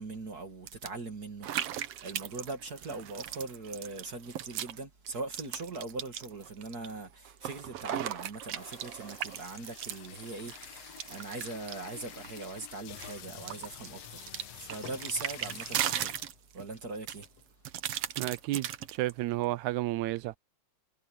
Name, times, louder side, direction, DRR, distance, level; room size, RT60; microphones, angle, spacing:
voice 1, 0.0-14.2 14.5-16.1 16.5-17.3, right 3 dB, 35° right, 2.2 m, -41 dB
sound 1, 0.7-0.9 1.4-4.8 5.1-6.9 7.2-12.6 13.0-16.7 17.1-19.1, right 11 dB, 65° right, 1.9 m, -37 dB
sound 2, 8.6-16.4 16.9-17.0 17.2-17.5 17.9-19.2, left 11 dB, 65° left, 2.0 m, -49 dB
voice 2, 18.2-20.4, right 17 dB, 85° right, 2.0 m, -32 dB
omnidirectional pair, 3.3 m